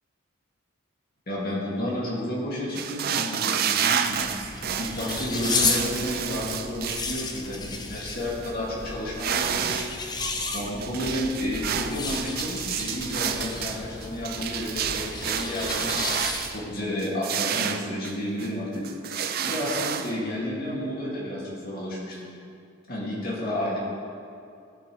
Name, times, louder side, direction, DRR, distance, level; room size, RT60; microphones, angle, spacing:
voice 1, 1.3-4.3 4.8-10.1 10.5-16.1 16.5-22.3 22.9-23.8, left 1 dB, 45° left, -5 dB, 2.3 m, -31 dB
sound 1, 2.8-7.1 7.7-7.8 8.1-8.5 9.1-9.9 10.2-16.6 17.0-18.5 18.8-20.1, right 8 dB, 45° right, 0.4 m, -30 dB
sound 2, 4.1-16.8, left 3 dB, 20° left, 0.6 m, -33 dB
16.0 x 7.4 x 3.3 m, 2.4 s
head